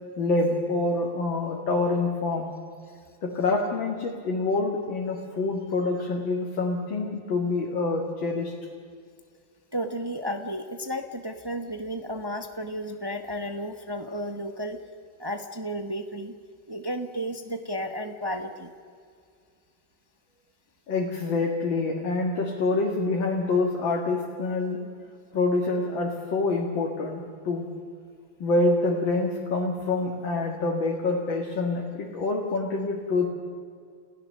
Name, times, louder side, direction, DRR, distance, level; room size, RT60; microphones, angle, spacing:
voice 1, 0.2-2.5 3.2-8.5 20.9-24.8 25.3-27.7 28.4-33.3, left 3 dB, 70° left, 0 dB, 2.7 m, -26 dB
voice 2, 9.7-14.8 15.2-16.3 16.7-18.7, equal, 15° right, 6 dB, 0.9 m, -33 dB
30.0 x 16.5 x 6.6 m, 2.2 s
omnidirectional pair, 2.1 m